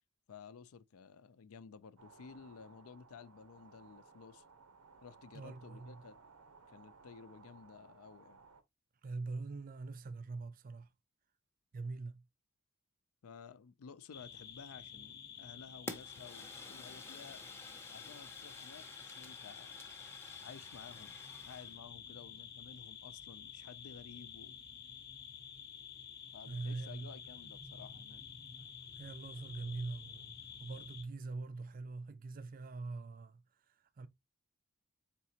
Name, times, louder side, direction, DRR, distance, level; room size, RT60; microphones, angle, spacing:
voice 1, 0.3-4.4 5.0-6.2 6.7-8.4 13.2-17.4 17.9-19.7 20.4-24.6 26.3-28.3, left 6 dB, 75° left, 0.4 m, -54 dB
sound 1, 2.0-8.6, right 4 dB, 85° right, 0.8 m, -60 dB
voice 2, 5.3-6.1 9.0-10.9 11.7-12.3 26.4-27.2 28.9-34.1, right 3 dB, 40° right, 0.4 m, -43 dB
sound 2, 14.1-31.0, left 7 dB, 45° left, 0.8 m, -51 dB
Fire, 15.9-21.8, left 2 dB, 10° left, 0.6 m, -51 dB
4.1 x 3.7 x 2.7 m
head